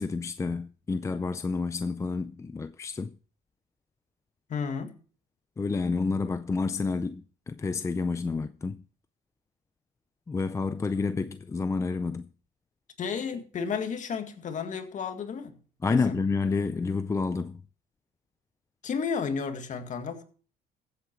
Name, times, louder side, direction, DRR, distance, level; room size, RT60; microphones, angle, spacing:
voice 1, 0.0-3.1 5.6-8.8 10.3-12.3 15.8-17.5, left 4 dB, 15° left, 0.5 m, -29 dB
voice 2, 4.5-4.9 13.0-15.6 15.9-16.2 18.8-20.2, left 6 dB, 50° left, 1.9 m, -32 dB
15.0 x 8.2 x 4.5 m
cardioid pair, 110°, 17 cm